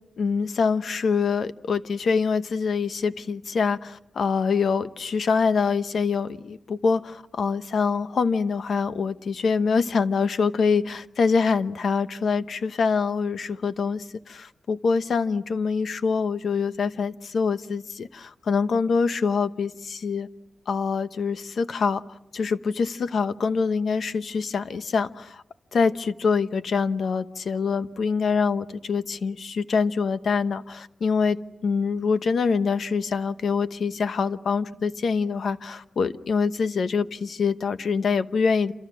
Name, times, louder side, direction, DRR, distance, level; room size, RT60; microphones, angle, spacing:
voice 1, 0.2-20.3 20.7-22.0 22.3-25.4 25.7-38.7, left 5 dB, 70° left, 11 dB, 1.0 m, -25 dB
28.0 x 27.5 x 6.2 m, 0.90 s
wide cardioid pair, 130°, 0 cm